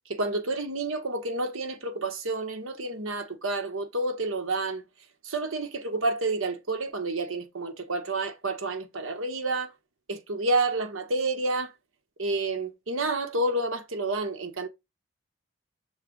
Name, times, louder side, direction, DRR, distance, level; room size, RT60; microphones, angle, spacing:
voice 1, 0.1-4.8 5.2-9.7 10.1-11.7 12.2-14.7, right 2 dB, 80° right, 1.4 m, -29 dB
6.7 x 4.0 x 3.8 m
head